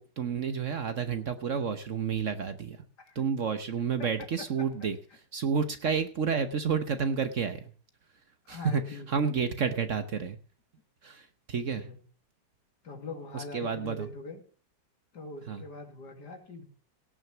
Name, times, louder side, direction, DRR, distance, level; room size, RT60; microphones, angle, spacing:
voice 1, 0.0-2.8 3.1-7.7 8.5-10.4 11.0-11.9 13.3-14.1 15.5-15.6, right 6 dB, 50° right, 10 dB, 1.1 m, -30 dB
voice 2, 8.4-9.3 11.6-12.0 12.8-14.4 15.1-16.6, left 3 dB, 70° left, 5 dB, 2.9 m, -42 dB
17.5 x 6.4 x 7.0 m, 0.41 s
omnidirectional pair, 1.9 m